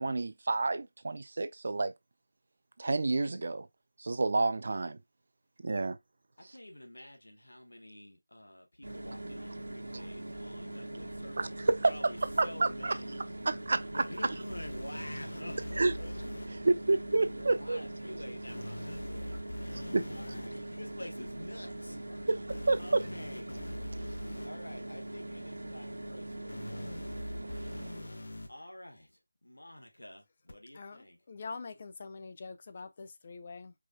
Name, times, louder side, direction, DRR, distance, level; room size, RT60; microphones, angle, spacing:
voice 1, 0.0-1.9 2.8-3.7 4.0-5.0 5.6-6.0 9.9-10.0 11.4-12.1 12.4-12.9 13.5-14.0 15.8-15.9 16.6-17.8 19.7-20.0 22.3-22.4 22.7-23.1, right 3 dB, 55° right, 0.5 m, -29 dB
voice 2, 6.4-11.6 11.9-13.2 13.9-16.1 17.3-22.3 22.8-23.5 24.4-27.1 28.3-31.2, left 1 dB, 85° left, 1.3 m, -48 dB
sound 1, 8.8-28.1, right 1 dB, 80° right, 1.2 m, -42 dB
sound 2, 14.5-16.5 18.5-20.5 22.5-24.5 26.5-28.5 30.5-30.6, left 1 dB, 65° left, 0.9 m, -42 dB
voice 3, 30.7-33.7, left 4 dB, 35° left, 0.5 m, -44 dB
4.8 x 3.2 x 2.6 m
figure-of-eight pair, 165°, 0 cm